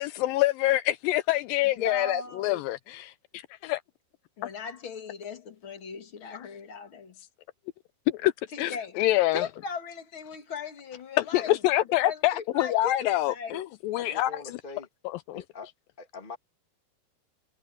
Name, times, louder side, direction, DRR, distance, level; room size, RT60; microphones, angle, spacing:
voice 1, 0.0-3.1 3.6-3.8 8.2-8.3 8.6-9.5 11.3-14.3 15.3-15.4, left 16 dB, 80° left, 2.1 m, -26 dB
voice 2, 1.8-2.6 4.4-7.2 8.5-9.0 9.3-11.6 12.0-13.6, left 5 dB, 40° left, 2.1 m, -38 dB
voice 3, 13.9-14.9 15.3-15.7 16.0-16.4, left 4 dB, 20° left, 1.5 m, -43 dB
omnidirectional pair, 4.4 m